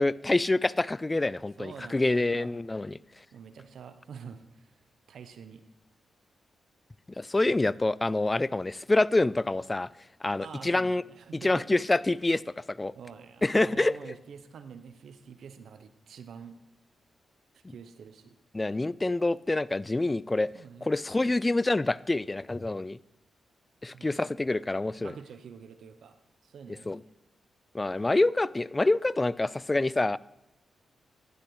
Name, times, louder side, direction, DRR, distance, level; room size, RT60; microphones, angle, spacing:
voice 1, 0.0-3.0 7.2-9.9 10.2-11.0 11.4-12.9 13.4-14.1 18.5-20.5 20.8-23.0 23.8-25.1 26.9-27.0 27.7-30.2, left 2 dB, 25° left, 21 dB, 0.3 m, -26 dB
voice 2, 1.6-2.5 3.3-4.8 5.1-5.6 10.4-11.6 13.0-16.6 17.5-18.4 20.5-20.9 23.9-24.2 25.0-27.0, right 6 dB, 75° right, 11 dB, 0.7 m, -47 dB
11.5 x 10.0 x 3.1 m, 0.95 s
supercardioid pair, 45°, 0 cm